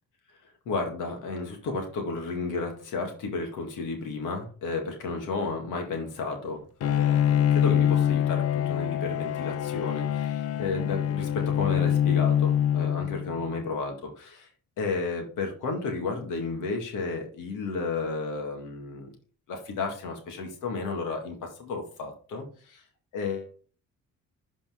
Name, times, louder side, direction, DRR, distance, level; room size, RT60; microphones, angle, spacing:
voice 1, 0.7-14.5 14.8-19.1 19.5-22.8 23.1-23.5, left 3 dB, 90° left, 3 dB, 2.1 m, -32 dB
Bowed string instrument, 6.8-13.5, left 10 dB, 55° left, 0.4 m, -25 dB
11.5 x 4.4 x 3.7 m, 0.42 s
cardioid pair, 90°, 30 cm